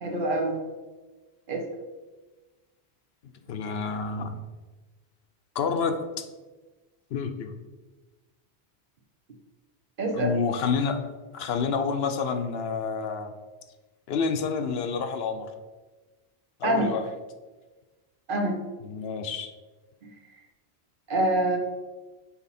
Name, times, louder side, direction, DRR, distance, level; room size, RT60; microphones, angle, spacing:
voice 1, 0.0-0.6 1.5-1.7 10.0-10.3 16.6-16.9 18.3-18.6 20.0-20.1 21.1-21.6, right 1 dB, 55° right, 3 dB, 1.0 m, -25 dB
voice 2, 3.5-4.4 5.6-6.3 7.1-7.5 10.1-11.0 11.3-13.3 14.1-15.5 16.6-17.0 18.8-19.5, left 5 dB, 75° left, 7 dB, 0.8 m, -28 dB
5.8 x 4.2 x 4.2 m, 1.2 s
omnidirectional pair, 1.1 m